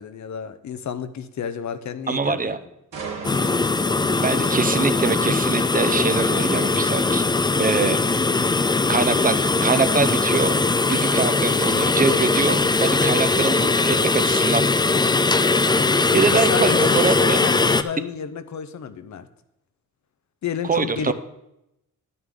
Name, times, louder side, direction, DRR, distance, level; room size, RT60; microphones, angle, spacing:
voice 1, 0.0-2.5 16.1-19.3 20.4-21.1, left 7 dB, 60° left, 11 dB, 0.8 m, -31 dB
voice 2, 2.1-2.6 4.2-7.2 7.6-8.0 8.9-10.5 10.9-14.7 16.1-17.4 20.7-21.1, right 4 dB, 25° right, 11 dB, 0.8 m, -23 dB
sound 1, 2.9-16.8 17.2-17.4, right 5 dB, 70° right, 2.2 m, -44 dB
sound 2, 3.2-17.8, left 3 dB, 15° left, 0.4 m, -20 dB
11.0 x 9.6 x 3.7 m, 0.86 s
cardioid pair, 85°, 33 cm